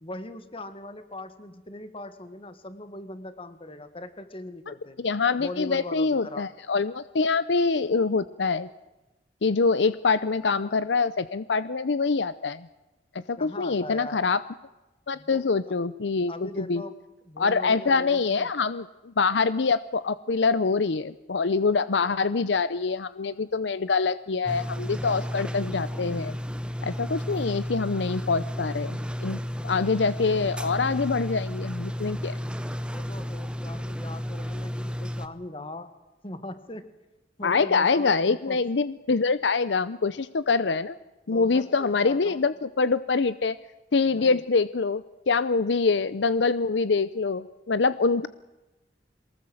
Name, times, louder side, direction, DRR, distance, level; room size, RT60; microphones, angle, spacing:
voice 1, 0.0-5.0 5.4-6.5 13.4-14.3 15.1-15.7 16.3-17.0 17.3-18.5 32.8-35.9 36.2-36.9 37.4-38.6 41.3-42.5 44.0-44.4, left 1 dB, 30° left, 10 dB, 1.8 m, -40 dB
voice 2, 5.0-8.7 9.4-12.7 13.3-14.4 15.1-16.8 17.4-26.4 26.8-32.3 37.4-41.0 41.3-43.6 43.9-48.3, left 4 dB, 75° left, 15 dB, 0.7 m, -25 dB
sound 1, 24.5-35.3, equal, 5° right, 1.0 m, -33 dB
23.0 x 19.5 x 7.8 m, 1.0 s
head